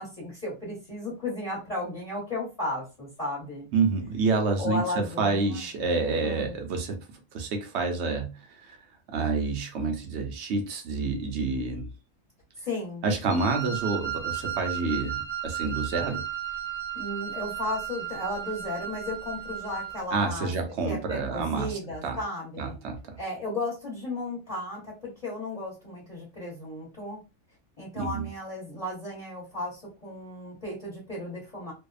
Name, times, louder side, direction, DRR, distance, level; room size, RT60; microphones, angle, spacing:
voice 1, 0.0-3.7 4.6-5.6 6.2-6.5 12.6-13.0 16.9-20.5 20.9-22.8 23.2-27.2 27.8-31.7, left 2 dB, 30° left, 1.2 m, -34 dB
voice 2, 3.7-7.0 7.3-8.8 9.1-11.9 13.0-16.2 20.1-22.2 22.6-23.2 28.0-28.3, right 4 dB, 65° right, 0.8 m, -28 dB
Wind instrument woodwind instrument, 13.3-20.0, right 9 dB, 10° right, 0.8 m, -34 dB
2.6 x 2.2 x 2.3 m
omnidirectional pair, 1.4 m